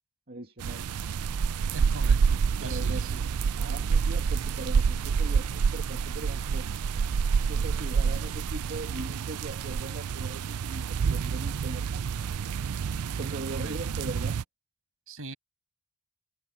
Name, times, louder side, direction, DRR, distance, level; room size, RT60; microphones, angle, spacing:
voice 1, 0.3-0.8 2.6-3.2 3.5-6.7 7.5-12.3 13.1-14.4, right 2 dB, 45° right, 2.5 m, -40 dB
sound 1, 0.6-14.4, right 6 dB, 80° right, 0.4 m, -28 dB
voice 2, 1.7-3.1 13.5-13.9 15.1-15.4, right 2 dB, 65° right, 6.4 m, -41 dB
head